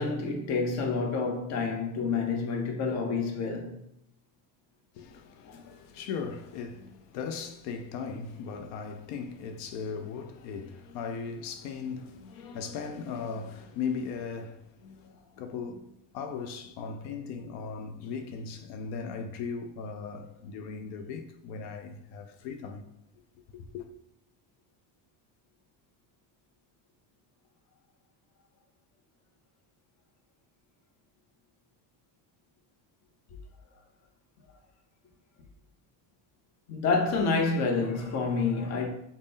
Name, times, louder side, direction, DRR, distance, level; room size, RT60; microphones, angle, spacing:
voice 1, 0.0-3.8 36.7-38.9, left 4 dB, 35° left, 0.6 m, -28 dB
voice 2, 4.9-22.9 23.5-23.8, left 5 dB, 80° left, 0.6 m, -38 dB
3.5 x 2.1 x 3.9 m
cardioid pair, 145°, 46 cm